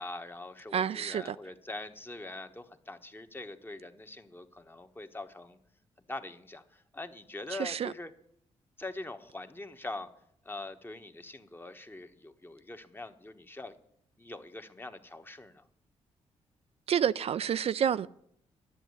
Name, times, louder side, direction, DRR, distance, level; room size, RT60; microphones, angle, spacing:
voice 1, 0.0-5.6 6.1-8.1 8.8-10.1 10.4-13.8 14.2-15.7, left 2 dB, 20° left, 1.2 m, -43 dB
voice 2, 0.7-1.4 7.5-7.9 16.9-18.1, right 8 dB, 60° right, 0.4 m, -29 dB
10.0 x 7.4 x 9.5 m
cardioid pair, 65°, 12 cm